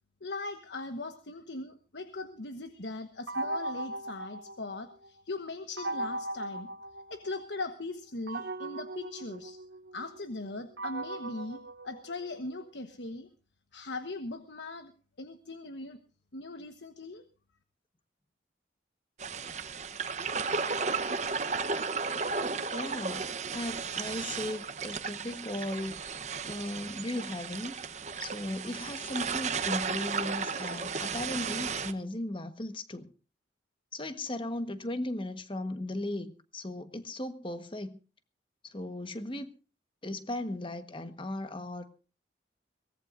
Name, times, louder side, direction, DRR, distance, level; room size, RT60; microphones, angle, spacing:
voice 1, 0.2-6.7 7.1-9.6 9.9-13.3 13.7-14.9 15.2-16.0 16.3-17.2, left 2 dB, 75° left, 1.2 m, -40 dB
sound 1, 3.3-5.1 5.8-7.6 8.3-12.5, right 1 dB, 75° right, 0.9 m, -38 dB
sound 2, 19.2-31.9, right 5 dB, 40° right, 0.9 m, -34 dB
voice 2, 22.7-26.1 26.4-27.7 28.2-33.1 33.9-37.9 38.6-39.5 40.0-41.9, left 1 dB, 30° left, 1.3 m, -37 dB
23.0 x 18.0 x 2.6 m
head